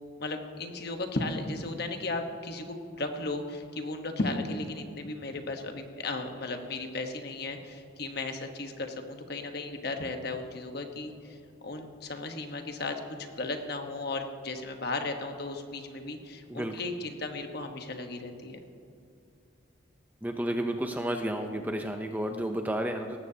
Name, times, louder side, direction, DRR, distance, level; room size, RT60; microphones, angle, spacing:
voice 1, 0.2-11.4 11.6-18.6, left 2 dB, 50° left, 5 dB, 1.1 m, -35 dB
voice 2, 20.2-23.2, right 1 dB, 10° right, 4 dB, 0.6 m, -31 dB
18.5 x 14.0 x 2.8 m, 2.6 s
head